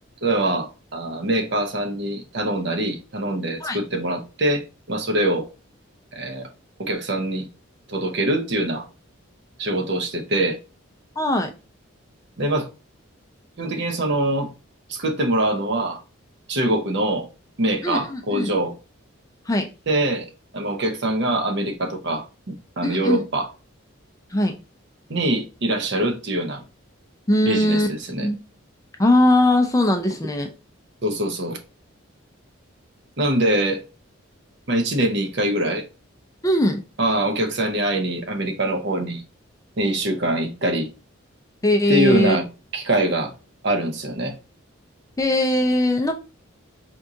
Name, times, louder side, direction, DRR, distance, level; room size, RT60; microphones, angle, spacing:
voice 1, 0.2-5.5 6.1-6.5 6.8-7.5 7.9-8.9 9.6-10.6 12.4-12.7 13.6-14.5 14.9-16.0 16.5-17.3 17.6-18.7 19.9-20.3 20.5-23.5 25.1-26.6 27.5-28.3 31.0-31.6 33.2-33.8 34.7-35.8 37.0-39.2 39.8-40.9 41.9-42.5 42.7-43.3 43.6-44.4, right 1 dB, 55° right, 0.7 m, -23 dB
voice 2, 11.2-11.5 17.8-18.5 19.5-19.7 22.8-23.2 24.3-24.5 27.3-27.9 28.2-28.4 29.0-30.5 36.4-36.8 41.6-42.4 45.2-46.1, left 1 dB, 15° left, 0.4 m, -20 dB
4.4 x 2.4 x 2.7 m
head